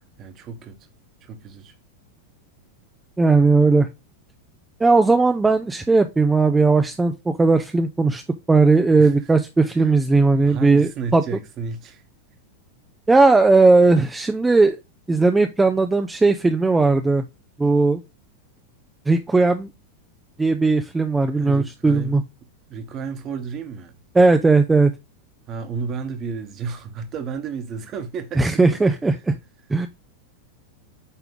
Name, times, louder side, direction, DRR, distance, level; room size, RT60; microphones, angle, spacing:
voice 1, 0.2-0.8 1.2-1.7 9.0-9.3 9.7-9.9 10.4-12.0 21.3-22.2 22.7-23.9 25.5-28.9, right 5 dB, 30° right, 1.2 m, -32 dB
voice 2, 3.2-3.9 4.8-8.2 8.5-11.2 13.1-14.8 15.1-17.2 17.6-18.0 19.1-19.7 20.4-22.2 24.1-24.9 28.4-29.1 29.7-29.9, right 3 dB, 10° right, 0.5 m, -17 dB
8.4 x 3.4 x 3.5 m
figure-of-eight pair, 90°, 0 cm